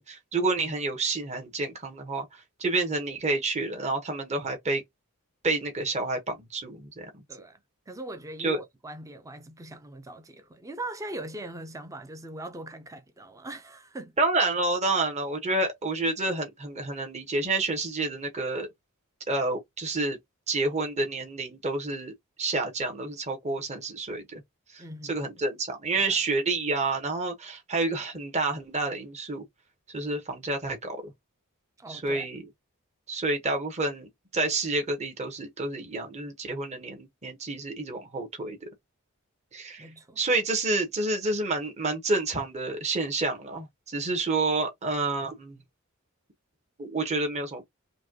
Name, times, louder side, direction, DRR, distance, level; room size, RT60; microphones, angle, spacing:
voice 1, 0.0-4.8 5.4-7.2 8.4-8.6 14.2-18.7 19.3-20.2 20.5-22.1 22.4-24.4 24.7-29.4 29.9-31.1 31.9-32.4 33.1-38.6 39.5-39.9 40.2-45.6 46.8-47.6, right 3 dB, 30° right, 1.0 m, -29 dB
voice 2, 7.3-7.6 7.9-14.2 14.9-15.0 24.8-25.3 25.9-26.1 31.8-32.4 39.8-40.2, right 1 dB, 15° right, 0.5 m, -41 dB
5.1 x 2.2 x 2.8 m
head